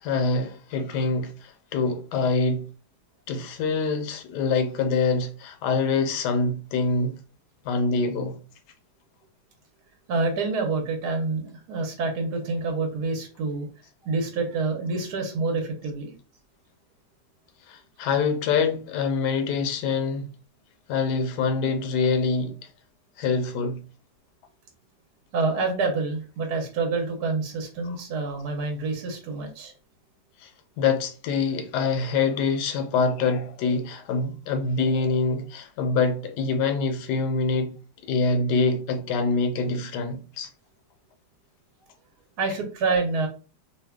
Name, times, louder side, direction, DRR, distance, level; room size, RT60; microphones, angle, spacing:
voice 1, 0.0-2.6 3.3-7.2 7.6-8.4 17.7-20.3 20.9-22.7 23.2-23.8 27.8-28.0 30.4-30.5 30.8-37.7 38.0-40.5, left 4 dB, 80° left, 1.2 m, -25 dB
voice 2, 10.1-13.7 14.0-16.1 25.3-29.7 42.4-43.3, right 3 dB, 75° right, 1.2 m, -27 dB
2.8 x 2.2 x 3.5 m
omnidirectional pair, 1.8 m